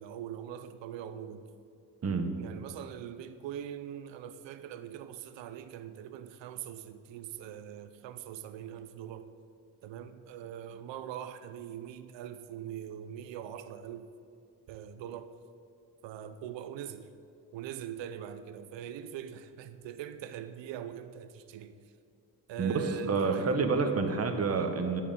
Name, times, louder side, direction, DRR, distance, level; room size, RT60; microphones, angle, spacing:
voice 1, 0.0-1.4 2.4-9.3 9.8-14.1 14.7-15.3 16.0-17.1 17.5-21.7 22.5-23.6, right 9 dB, 90° right, 11 dB, 0.8 m, -42 dB
voice 2, 23.0-25.0, right 4 dB, 35° right, 6 dB, 1.3 m, -28 dB
11.0 x 8.1 x 8.5 m, 2.5 s
cardioid pair, 130°, 43 cm